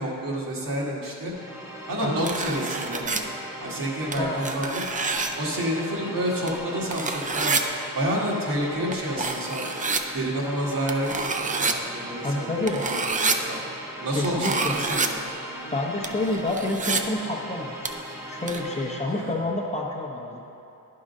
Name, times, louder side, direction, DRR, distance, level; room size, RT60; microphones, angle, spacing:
voice 1, 0.0-1.3 1.9-3.2 3.6-4.8 5.4-7.5 7.9-11.3 11.6-13.6 14.0-15.2 19.1-19.3, equal, 65° right, -4 dB, 1.6 m, -29 dB
sound 1, 1.3-19.2, equal, 5° right, 0.9 m, -39 dB
sound 2, 2.2-3.2 4.1-5.4 6.5-6.6 6.9-7.6 8.9-9.0 9.2-10.0 10.9-11.7 12.7-13.4 14.2-15.1 16.0-17.0 17.8-18.1 18.5-18.6, right 4 dB, 25° right, 0.4 m, -27 dB
voice 2, 12.2-12.8 14.1-14.8 15.7-17.9 18.3-20.4, left 2 dB, 20° left, -2 dB, 0.6 m, -28 dB
11.0 x 3.7 x 5.3 m, 2.8 s
wide cardioid pair, 135°, 36 cm